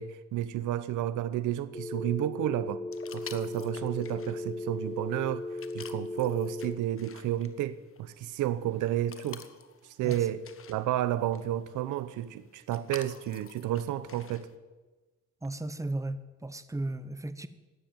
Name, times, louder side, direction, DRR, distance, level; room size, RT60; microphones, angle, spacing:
voice 1, 0.0-2.8 3.1-5.4 5.7-9.4 10.0-10.4 10.7-14.5, right 12 dB, 85° right, 0.9 m, -31 dB
Telephone, 1.7-6.7, left 2 dB, 20° left, 1.4 m, -37 dB
sound 1, 2.9-14.5, left 7 dB, 45° left, 1.4 m, -51 dB
voice 2, 15.4-17.5, right 2 dB, 10° right, 1.2 m, -35 dB
16.0 x 10.0 x 8.9 m
cardioid pair, 90°, 30 cm